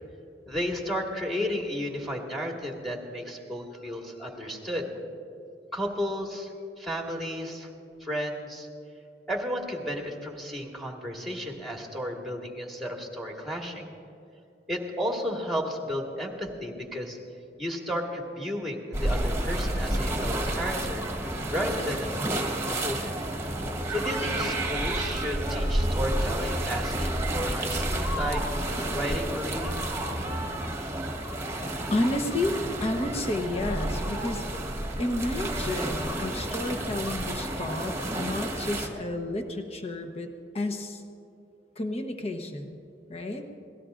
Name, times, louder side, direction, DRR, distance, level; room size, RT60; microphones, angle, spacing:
voice 1, 0.5-4.9 5.7-7.7 8.0-8.7 9.3-13.9 14.7-17.2 17.6-22.5 22.8-23.1 23.9-29.8, equal, ahead, 0 dB, 1.7 m, -33 dB
sound 1, 18.9-38.9, right 1 dB, 15° right, 1.4 m, -30 dB
voice 2, 31.9-34.6 35.0-40.3 40.5-41.0 41.8-42.8 43.1-43.4, left 1 dB, 35° left, 5 dB, 1.1 m, -31 dB
24.5 x 17.5 x 2.6 m, 2.6 s
head